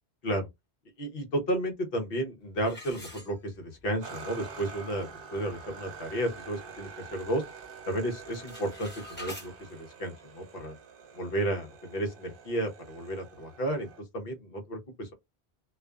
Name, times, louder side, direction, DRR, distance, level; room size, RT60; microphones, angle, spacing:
voice 1, 1.0-7.4 7.9-10.7 11.1-15.1, right 1 dB, 65° left, 1.0 m, -33 dB
sound 1, 2.6-3.9 4.3-4.4 5.0-5.1 5.5-5.8 6.2-7.3 7.6-8.0 8.2-9.5, left 1 dB, 10° left, 0.7 m, -45 dB
sound 2, 4.0-14.0, right 5 dB, 60° right, 0.7 m, -47 dB
2.4 x 2.4 x 2.2 m
omnidirectional pair, 1.1 m